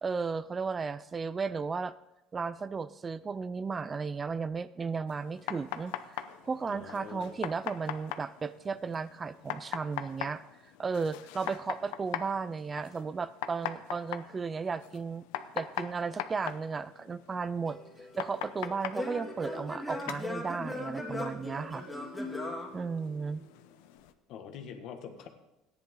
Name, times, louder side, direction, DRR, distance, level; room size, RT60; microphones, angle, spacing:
voice 1, 0.0-1.9 2.3-10.4 10.8-15.2 15.5-17.8 18.2-21.8 22.7-23.4, right 5 dB, 25° right, 16 dB, 0.4 m, -34 dB
sound 1, 5.1-24.1, left 12 dB, 90° left, 0.7 m, -42 dB
voice 2, 6.7-7.4 24.3-25.3, left 7 dB, 60° left, 6 dB, 1.5 m, -45 dB
Singing / Plucked string instrument, 17.7-23.5, left 1 dB, 5° left, 2.4 m, -39 dB
14.0 x 10.5 x 3.8 m, 0.94 s
cardioid pair, 120°, 0 cm